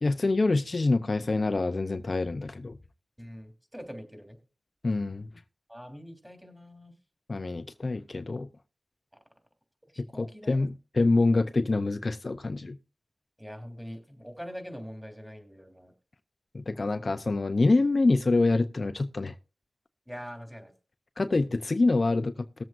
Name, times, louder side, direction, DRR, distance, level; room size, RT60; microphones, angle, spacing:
voice 1, 0.0-2.8 4.8-5.3 7.3-8.5 10.0-12.8 16.5-19.3 21.2-22.6, left 3 dB, 50° left, 0.6 m, -26 dB
voice 2, 3.2-4.4 5.7-6.9 9.9-10.7 13.4-15.9 20.1-20.7, equal, 5° right, 3.2 m, -43 dB
19.0 x 7.7 x 2.5 m
cardioid pair, 55°, 0 cm